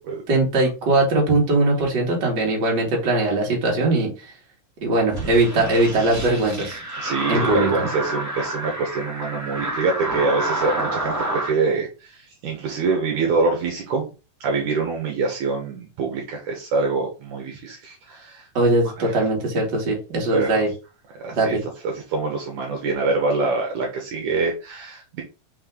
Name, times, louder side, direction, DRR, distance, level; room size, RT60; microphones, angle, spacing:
voice 1, 0.3-4.3 4.8-6.8 7.3-7.9 18.5-20.7 21.4-21.6, right 2 dB, 35° right, -1 dB, 2.5 m, -20 dB
sound 1, 5.1-11.5, right 1 dB, 10° right, 0.8 m, -28 dB
voice 2, 7.0-14.1 14.4-18.5 19.0-19.1 20.3-20.6 21.2-21.6 21.9-25.2, right 4 dB, 70° right, 1 dB, 2.6 m, -25 dB
5.6 x 4.4 x 3.8 m, 0.31 s
omnidirectional pair, 4.0 m